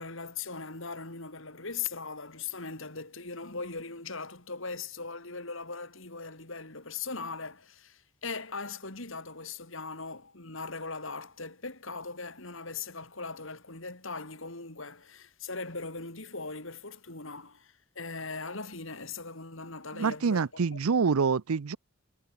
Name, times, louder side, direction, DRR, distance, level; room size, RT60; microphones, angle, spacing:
voice 1, 0.0-20.5, left 4 dB, 60° left, 4.2 m, -39 dB
voice 2, 19.9-21.8, right 5 dB, 85° right, 0.6 m, -26 dB
head